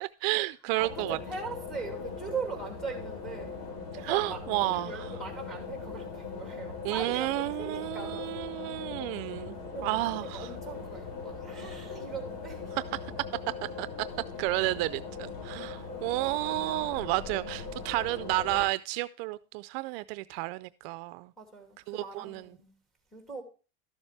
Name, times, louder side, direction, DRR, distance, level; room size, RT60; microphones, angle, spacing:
voice 1, 0.0-1.2 4.0-4.9 6.8-9.6 9.8-10.5 13.8-13.9 14.4-21.3 21.9-22.4, right 20 dB, 65° right, 0.5 m, -31 dB
sound 1, 0.8-18.7, left 4 dB, 70° left, 4.0 m, -40 dB
voice 2, 0.8-3.6 3.9-7.3 7.6-8.4 9.7-12.8 15.5-15.6 15.9-16.4 21.4-22.7 23.1-23.4, right 4 dB, ahead, 2.5 m, -40 dB
13.0 x 7.2 x 3.2 m
cardioid pair, 165°, 32 cm